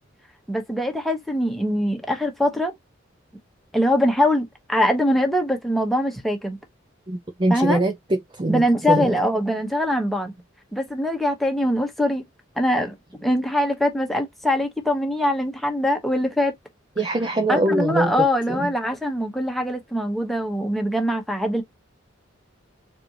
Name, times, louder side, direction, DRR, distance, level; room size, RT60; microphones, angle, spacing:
voice 1, 0.5-2.7 3.7-6.6 7.5-7.8 8.5-10.3 10.7-12.2 12.6-12.9 13.2-16.5 17.5-21.6, left 1 dB, ahead, 1.1 m, -22 dB
voice 2, 7.1-9.2 17.0-18.7, right 1 dB, 25° right, 0.5 m, -23 dB
4.3 x 2.6 x 3.0 m
head